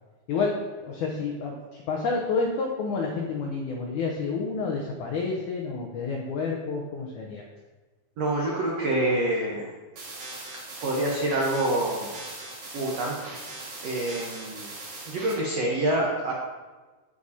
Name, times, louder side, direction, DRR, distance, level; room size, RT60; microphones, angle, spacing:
voice 1, 0.3-7.4, left 4 dB, 80° left, 0 dB, 1.7 m, -29 dB
voice 2, 8.2-9.7 10.8-12.2 12.7-13.2 13.8-14.7 15.1-16.3, right 1 dB, 85° right, -3 dB, 1.4 m, -26 dB
sound 1, 10.0-15.3, right 2 dB, 55° right, 2.9 m, -40 dB
14.5 x 4.9 x 2.8 m, 1.3 s
omnidirectional pair, 4.4 m